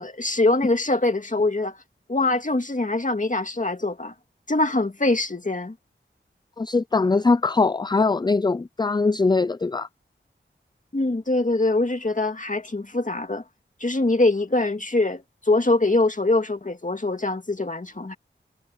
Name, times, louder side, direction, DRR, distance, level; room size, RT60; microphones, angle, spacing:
voice 1, 0.0-1.8 2.1-4.1 4.5-5.8 10.9-13.4 13.8-18.1, left 2 dB, 40° left, 2.1 m, -23 dB
voice 2, 6.6-9.9, left 3 dB, 20° left, 0.4 m, -21 dB
wide cardioid pair, 50°, 20 cm